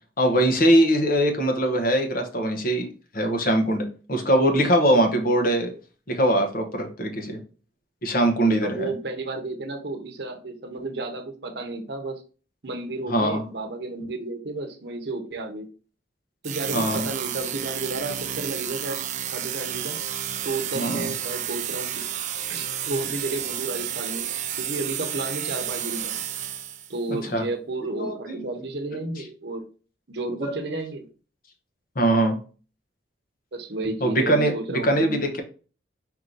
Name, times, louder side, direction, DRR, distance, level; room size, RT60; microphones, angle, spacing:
voice 1, 0.2-2.9 3.1-5.7 6.1-7.4 8.0-8.9 13.1-13.4 16.7-17.1 20.7-21.1 27.1-27.4 28.0-28.2 28.9-29.0 30.4-30.5 32.0-32.4 34.0-35.4, right 1 dB, 45° left, 4 dB, 0.9 m, -22 dB
voice 2, 8.6-12.2 12.6-15.7 16.4-19.0 19.3-20.0 20.4-22.0 22.5-24.2 24.6-26.1 26.9-29.7 30.1-31.1 33.5-35.3, right 2 dB, 60° right, 4 dB, 0.9 m, -32 dB
sound 1, 16.4-27.0, right 10 dB, 40° right, 0.3 m, -31 dB
4.6 x 2.7 x 3.8 m, 0.37 s
head